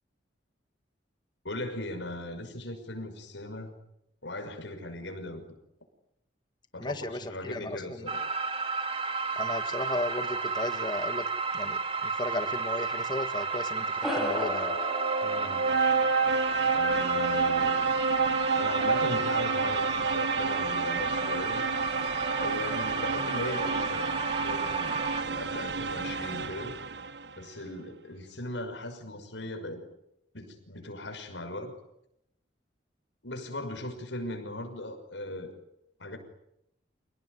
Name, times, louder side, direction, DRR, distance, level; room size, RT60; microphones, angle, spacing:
voice 1, 1.4-3.7 4.2-5.4 6.7-8.2 15.2-15.6 16.7-17.8 18.6-21.6 22.3-24.1 24.4-25.0 25.2-26.8 27.4-29.8 30.3-31.7 33.2-35.6 36.0-36.2, left 1 dB, 85° left, 6 dB, 6.0 m, -38 dB
voice 2, 6.8-8.1 9.3-11.2 11.5-13.8 14.1-14.8, left 1 dB, 25° left, 9 dB, 1.7 m, -35 dB
sound 1, 8.1-25.2, right 4 dB, 30° right, 2.3 m, -32 dB
sound 2, 14.0-18.8, left 1 dB, ahead, 5.6 m, -37 dB
sound 3, 14.5-27.3, right 4 dB, 65° right, 1.4 m, -30 dB
28.5 x 19.0 x 9.8 m, 0.81 s
head